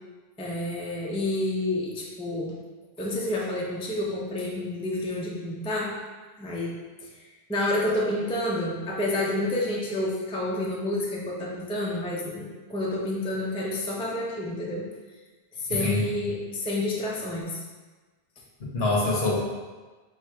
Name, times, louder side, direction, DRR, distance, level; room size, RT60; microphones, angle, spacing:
voice 1, 0.4-2.5 3.0-5.9 6.4-6.8 7.0-14.9 15.5-17.6, left 1 dB, 10° left, -3 dB, 0.4 m, -29 dB
voice 2, 15.7-16.1 18.6-19.4, left 2 dB, 70° left, -3 dB, 1.1 m, -25 dB
4.5 x 2.2 x 4.7 m, 1.3 s
omnidirectional pair, 1.1 m